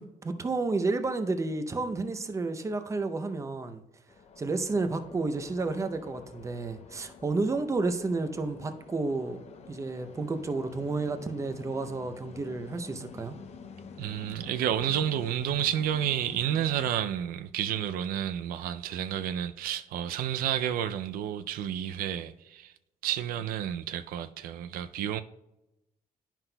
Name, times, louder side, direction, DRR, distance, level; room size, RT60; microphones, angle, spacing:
voice 1, 0.0-3.8 4.4-9.4 9.7-13.4, right 3 dB, 20° right, 0.6 m, -31 dB
sound 1, 4.1-16.9, left 5 dB, 50° left, 0.6 m, -48 dB
voice 2, 14.0-22.7 23.0-25.2, right 10 dB, 90° right, 0.4 m, -30 dB
11.0 x 5.8 x 2.2 m
cardioid pair, 145°, 15 cm